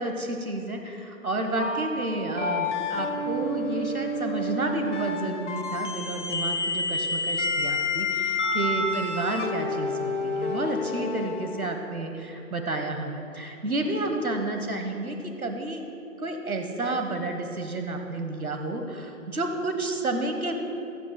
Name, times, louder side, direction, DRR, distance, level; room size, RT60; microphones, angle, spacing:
voice 1, 0.0-15.8 16.2-20.7, right 2 dB, 70° right, 4 dB, 1.2 m, -30 dB
sound 1, 1.6-11.8, left 2 dB, 55° left, 1.0 m, -29 dB
15.5 x 12.5 x 2.2 m, 2.6 s
figure-of-eight pair, 150°, 44 cm